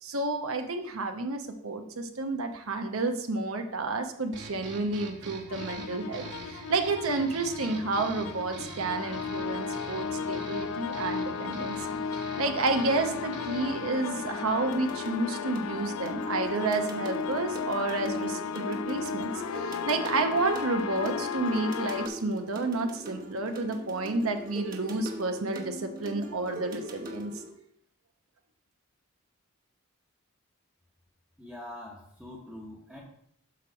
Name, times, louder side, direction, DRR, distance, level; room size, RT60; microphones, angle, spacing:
voice 1, 0.0-12.0 12.4-27.3, right 3 dB, 80° right, 6 dB, 0.9 m, -30 dB
sound 1, 4.3-13.9, right 3 dB, 55° right, 1.2 m, -45 dB
sound 2, 5.5-22.1, left 6 dB, 90° left, 0.4 m, -35 dB
sound 3, 13.9-27.5, equal, 40° right, 0.9 m, -42 dB
voice 2, 31.4-33.0, left 1 dB, ahead, -7 dB, 1.0 m, -44 dB
8.1 x 3.0 x 6.2 m, 0.68 s
head